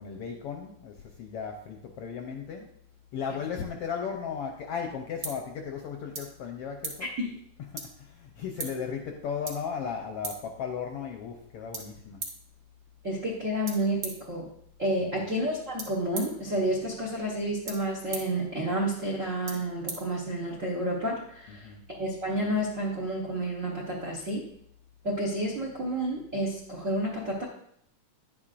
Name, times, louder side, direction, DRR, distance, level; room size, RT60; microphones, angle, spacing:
voice 1, 0.0-2.7 3.1-7.1 7.7-12.2 15.2-15.3 21.5-21.9, left 6 dB, 75° left, 3 dB, 1.4 m, -36 dB
sound 1, 4.5-20.7, right 3 dB, 45° right, 1.2 m, -44 dB
voice 2, 13.0-14.5 14.8-24.5 25.0-27.5, right 1 dB, 65° right, -1 dB, 0.7 m, -30 dB
10.5 x 8.7 x 2.5 m, 0.69 s
omnidirectional pair, 3.3 m